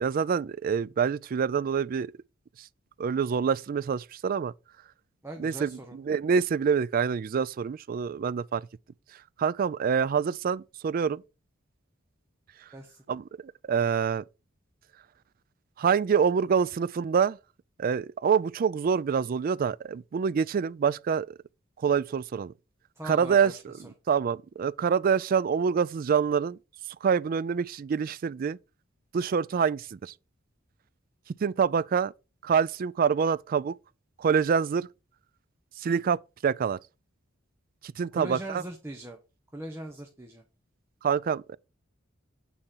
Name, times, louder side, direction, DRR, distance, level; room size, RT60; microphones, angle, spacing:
voice 1, 0.0-2.1 3.0-4.5 5.4-8.7 9.4-11.2 13.1-13.2 13.7-14.2 15.8-17.4 17.8-21.3 21.8-22.5 23.0-23.7 24.1-26.6 27.0-28.6 29.1-30.1 31.4-32.1 32.4-33.8 34.2-34.9 35.8-36.8 37.8-38.6 41.0-41.6, right 6 dB, 45° right, 0.3 m, -26 dB
voice 2, 5.2-6.0 12.7-13.0 23.0-23.8 38.1-39.2 39.5-40.4, right 1 dB, 10° right, 1.0 m, -40 dB
9.0 x 4.2 x 5.5 m
head